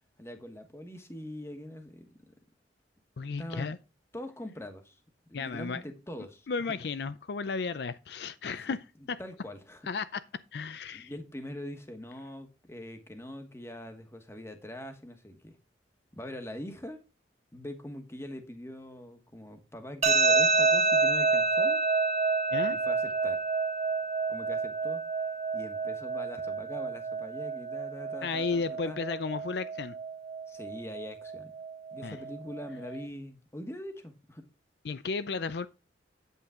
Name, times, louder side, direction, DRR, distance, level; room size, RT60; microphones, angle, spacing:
voice 1, 0.2-2.1 3.4-3.7 4.1-5.0 5.3-6.5 8.6-8.7 9.2-9.9 10.9-15.6 16.1-17.0 17.5-21.8 22.7-23.4 24.3-25.0 25.5-29.0 30.5-31.5 31.9-34.4, left 1 dB, 15° left, 1.2 m, -42 dB
voice 2, 3.2-3.8 5.3-5.8 6.5-9.2 9.9-10.2 10.5-11.1 22.5-22.8 28.2-30.0 32.0-32.2 34.8-35.7, left 4 dB, 60° left, 0.5 m, -34 dB
sound 1, 20.0-33.0, right 4 dB, 40° right, 1.2 m, -29 dB
8.8 x 8.2 x 3.7 m
head